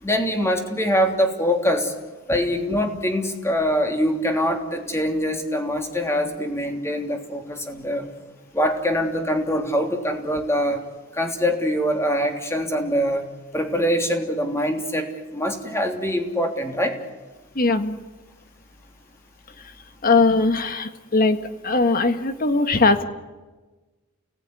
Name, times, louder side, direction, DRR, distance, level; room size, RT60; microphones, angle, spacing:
voice 1, 0.0-1.9 2.3-8.1 8.5-10.8 11.1-13.2 13.5-17.0, equal, 15° left, 3 dB, 3.1 m, -23 dB
voice 2, 17.6-18.0 20.0-21.4 21.6-23.0, left 3 dB, 40° left, 9 dB, 1.6 m, -19 dB
30.0 x 18.5 x 9.8 m, 1.3 s
head